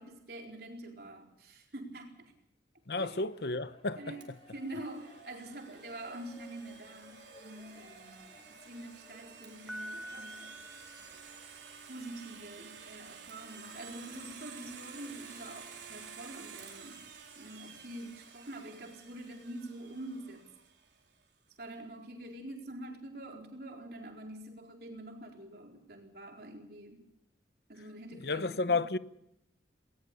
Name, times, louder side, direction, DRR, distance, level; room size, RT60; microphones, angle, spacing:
voice 1, 0.0-2.3 3.0-3.2 4.0-8.2 8.5-10.6 11.9-17.0 17.4-20.5 21.6-27.1 27.7-28.9, right 1 dB, 55° right, 4.3 m, -46 dB
sound 1, 2.8-16.9, equal, 30° left, 5.6 m, -60 dB
voice 2, 2.9-4.0 28.2-29.0, left 3 dB, 60° left, 0.9 m, -31 dB
Domestic sounds home sounds, 4.2-21.0, right 6 dB, 75° right, 4.3 m, -52 dB
Piano, 9.7-11.8, equal, ahead, 0.8 m, -46 dB
20.0 x 20.0 x 7.0 m
head